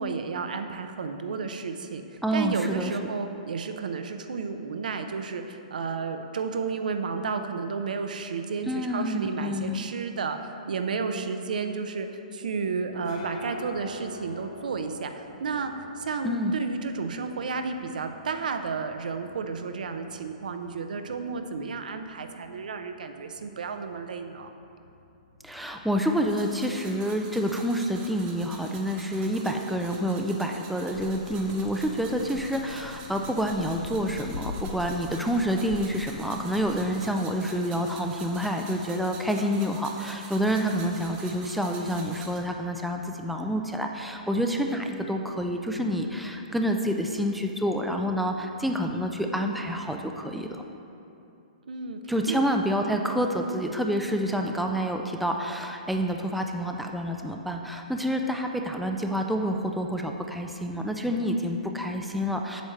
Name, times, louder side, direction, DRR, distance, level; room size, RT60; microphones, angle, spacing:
voice 1, 0.0-2.0 2.3-24.5 51.7-52.0 52.3-52.5 53.0-53.1, right 5 dB, 80° right, 7 dB, 0.6 m, -32 dB
voice 2, 2.2-3.0 8.6-9.9 16.2-16.5 25.4-50.6 52.1-62.6, equal, ahead, 3 dB, 0.3 m, -28 dB
sound 1, 12.6-30.1, left 2 dB, 45° left, 1.4 m, -48 dB
sound 2, 26.3-42.4, right 4 dB, 30° right, 1.0 m, -47 dB
sound 3, 30.9-37.2, left 5 dB, 75° left, 0.5 m, -41 dB
8.1 x 3.2 x 6.4 m, 2.8 s
hypercardioid pair, 150°, 4 cm